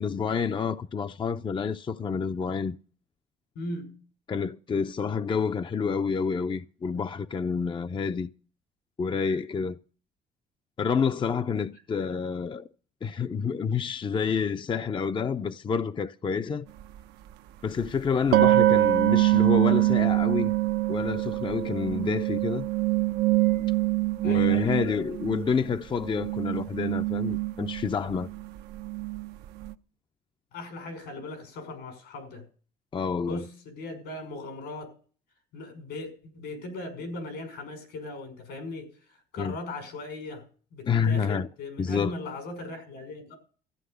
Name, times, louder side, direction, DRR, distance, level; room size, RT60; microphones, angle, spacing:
voice 1, 0.0-2.8 4.3-8.3 9.0-9.8 10.8-12.7 13.0-16.6 17.6-20.5 20.9-22.7 24.2-28.3 32.9-33.4 39.4-39.5 40.9-41.5 41.8-42.1, left 6 dB, 30° left, 0.5 m, -28 dB
voice 2, 3.6-4.0 24.2-24.9 30.5-32.4 33.2-34.9 35.5-40.4 40.7-43.3, left 2 dB, 85° left, 5.5 m, -39 dB
sound 1, 16.8-16.9 18.3-25.7 26.0-29.7, right 17 dB, 80° right, 0.7 m, -24 dB
14.0 x 9.4 x 6.5 m
cardioid pair, 90°, 17 cm